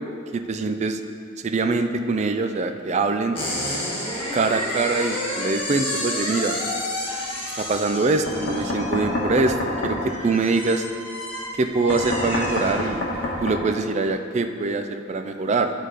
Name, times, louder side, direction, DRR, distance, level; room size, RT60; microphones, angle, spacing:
voice 1, 0.3-1.0 1.4-3.4 4.3-6.5 7.5-10.8 11.6-13.1 13.4-15.7, right 3 dB, 35° right, 7 dB, 0.4 m, -23 dB
sound 1, 3.3-13.3, left 1 dB, 30° left, 1.7 m, -31 dB
Knock, 8.3-10.0 11.9-13.6, left 1 dB, 60° left, 1.4 m, -27 dB
11.0 x 4.1 x 4.8 m, 2.4 s
head